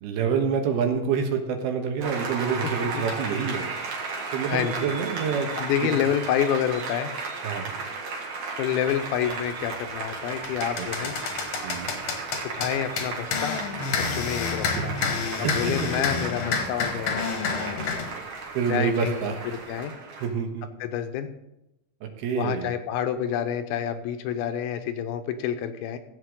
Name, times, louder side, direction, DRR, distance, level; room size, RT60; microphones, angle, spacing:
voice 1, 0.0-3.7 4.3-5.5 5.8-5.9 7.4-7.7 10.8-10.9 11.6-11.9 14.8-14.9 15.3-15.9 18.5-19.4 20.2-20.7 22.0-22.7, right 6 dB, 85° right, 4 dB, 3.3 m, -27 dB
Applause, 2.0-20.3, right 4 dB, 55° right, 2.9 m, -35 dB
voice 2, 4.5-5.0 5.6-7.1 8.6-11.1 12.4-13.6 14.0-14.9 15.4-17.5 18.7-19.2 19.5-19.9 20.8-21.3 22.3-26.0, left 9 dB, 80° left, 9 dB, 2.7 m, -28 dB
sound 1, 9.2-9.4 9.9-18.1, left 5 dB, 60° left, 1.9 m, -29 dB
15.5 x 8.0 x 3.8 m, 0.88 s
omnidirectional pair, 4.4 m